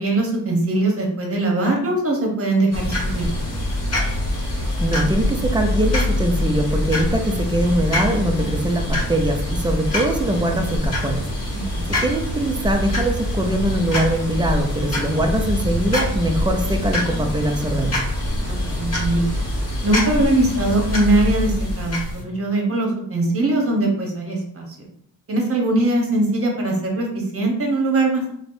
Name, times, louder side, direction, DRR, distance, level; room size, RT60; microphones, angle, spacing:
voice 1, 0.0-3.4 11.5-11.8 18.5-19.3 19.8-24.9 25.3-28.3, right 2 dB, 40° right, 0 dB, 0.9 m, -21 dB
sound 1, 2.7-22.2, left 1 dB, 45° left, 0.9 m, -24 dB
voice 2, 4.8-11.2 12.0-18.0, right 1 dB, 15° right, 4 dB, 0.4 m, -22 dB
3.1 x 2.1 x 2.6 m, 0.71 s
cardioid pair, 70°, 37 cm